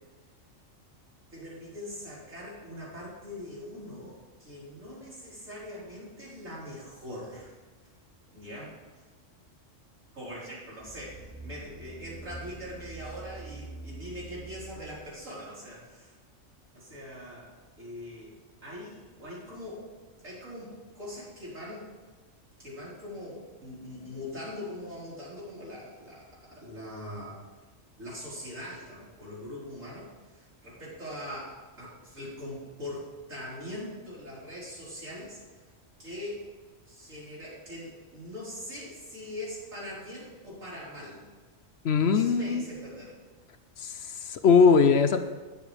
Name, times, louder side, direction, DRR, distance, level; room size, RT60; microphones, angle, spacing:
voice 1, 1.3-7.6 8.3-8.7 10.1-16.2 16.7-17.5 17.8-18.3 18.6-19.8 20.2-21.9 22.6-26.2 26.5-27.4 28.0-35.4 36.0-36.4 36.8-41.2 42.0-43.2, left 1 dB, 85° right, -8 dB, 5.0 m, -42 dB
sound 1, 10.8-15.2 15.7-15.8, right 3 dB, 10° right, 1.6 m, -45 dB
voice 2, 41.8-42.6 43.8-45.2, left 5 dB, 60° left, 9 dB, 0.9 m, -21 dB
19.5 x 7.3 x 3.4 m, 1.3 s
omnidirectional pair, 1.3 m